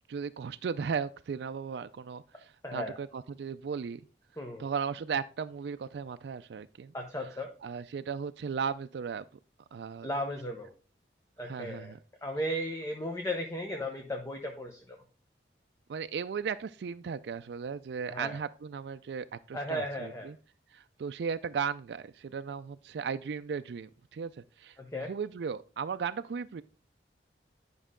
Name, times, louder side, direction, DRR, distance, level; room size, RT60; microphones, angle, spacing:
voice 1, 0.1-4.0 4.6-6.9 7.6-9.2 9.7-10.1 11.4-12.0 15.9-20.4 20.7-24.3 24.6-26.6, right 6 dB, 75° right, 10 dB, 0.3 m, -36 dB
voice 2, 2.6-3.0 4.4-4.7 6.9-7.5 10.0-10.7 11.4-11.9 12.2-15.0 18.1-18.4 19.5-20.3 24.8-25.1, equal, 15° left, 3 dB, 0.8 m, -35 dB
10.5 x 5.4 x 3.7 m, 0.38 s
head